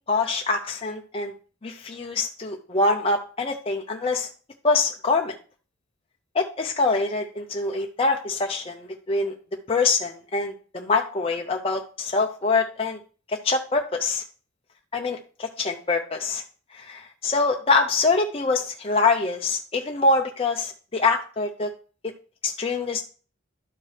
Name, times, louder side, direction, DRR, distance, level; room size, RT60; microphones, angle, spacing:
voice 1, 0.1-1.3 1.6-4.3 4.6-5.3 6.3-9.3 9.7-13.0 13.3-14.2 14.9-16.4 16.7-21.7 22.4-23.0, left 3 dB, 30° left, 2 dB, 0.6 m, -24 dB
11.5 x 4.5 x 3.3 m, 0.38 s
head